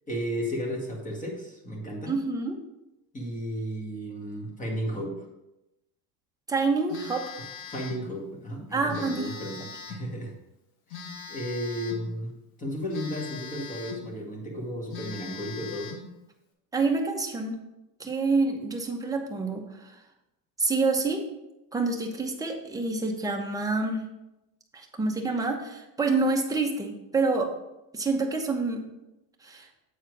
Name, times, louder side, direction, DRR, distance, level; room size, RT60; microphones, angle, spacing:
voice 1, 0.1-2.1 3.1-5.2 7.7-10.3 10.9-12.3 12.6-15.9, equal, 15° left, 0 dB, 1.9 m, -34 dB
voice 2, 2.1-2.6 6.5-7.3 8.7-9.3 16.7-17.6 18.0-19.9 20.6-21.2 21.7-24.0 24.7-27.5 27.9-28.8 29.4-29.7, right 3 dB, 10° right, 1 dB, 1.0 m, -27 dB
Telephone, 6.9-8.1 8.9-10.1 10.9-12.1 12.9-14.1 14.5-14.6 14.9-16.1, left 5 dB, 80° left, 1.6 m, -41 dB
8.3 x 4.3 x 4.7 m, 0.93 s
supercardioid pair, 125°, 44 cm